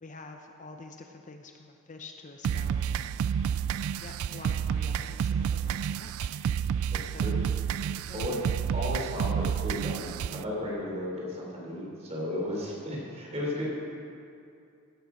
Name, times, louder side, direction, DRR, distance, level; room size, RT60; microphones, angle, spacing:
voice 1, 0.0-2.8 3.1-3.3 4.0-6.3 7.1-7.4 8.1-8.3, left 3 dB, 35° left, 4 dB, 0.6 m, -47 dB
sound 1, 2.4-10.4, right 8 dB, 90° right, 0.3 m, -30 dB
voice 2, 6.9-7.4 8.1-8.5 8.7-13.7, left 1 dB, 30° right, -4 dB, 3.5 m, -34 dB
16.0 x 8.3 x 5.0 m, 2.5 s
head